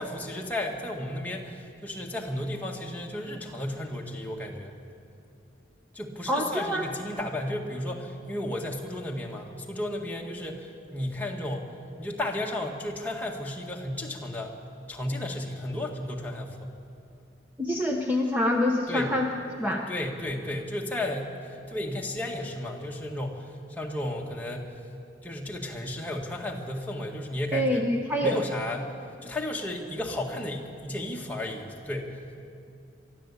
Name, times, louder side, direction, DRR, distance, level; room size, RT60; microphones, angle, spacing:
voice 1, 0.0-4.8 5.9-11.7 12.0-14.6 14.9-16.7 18.9-19.1 19.9-24.7 25.2-27.9 28.2-28.9 29.2-32.2, left 1 dB, 10° left, -1 dB, 1.9 m, -33 dB
voice 2, 6.3-6.8 17.6-19.3 19.6-19.9 27.5-28.4, left 1 dB, 10° right, 1 dB, 1.0 m, -26 dB
23.0 x 13.0 x 8.5 m, 2.5 s
head